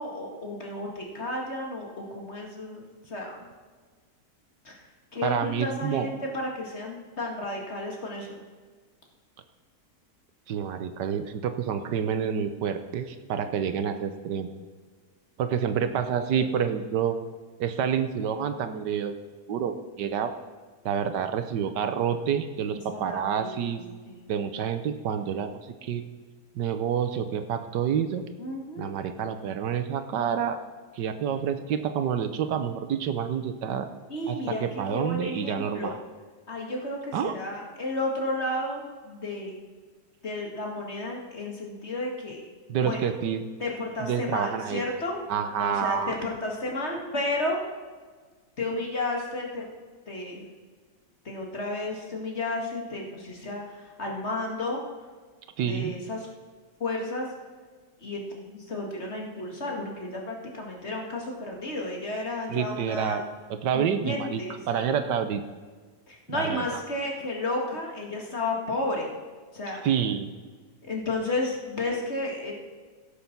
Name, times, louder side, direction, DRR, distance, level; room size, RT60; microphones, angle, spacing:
voice 1, 0.0-3.5 4.6-4.8 5.1-8.4 22.9-23.7 24.1-24.3 28.4-28.9 34.1-35.9 36.5-39.5 40.2-42.4 42.8-43.1 43.6-45.2 45.6-47.6 48.6-49.6 50.1-50.5 51.3-54.8 55.6-56.2 56.8-57.3 58.0-63.3 63.7-64.8 66.1-69.1 69.5-69.8 70.8-72.5, left 2 dB, 40° left, 0 dB, 2.2 m, -32 dB
voice 2, 5.2-6.1 10.5-14.5 15.4-17.2 17.6-19.2 19.5-20.3 20.8-23.8 24.3-26.0 26.5-28.2 28.8-30.6 30.9-33.9 34.3-36.0 37.1-37.3 42.7-43.4 44.0-44.8 45.3-46.2 55.6-55.9 62.5-63.2 63.5-64.4 64.7-65.4 66.3-66.8 69.8-70.3, right 8 dB, 75° right, 9 dB, 1.4 m, -28 dB
16.5 x 6.9 x 5.9 m, 1.5 s
omnidirectional pair, 1.9 m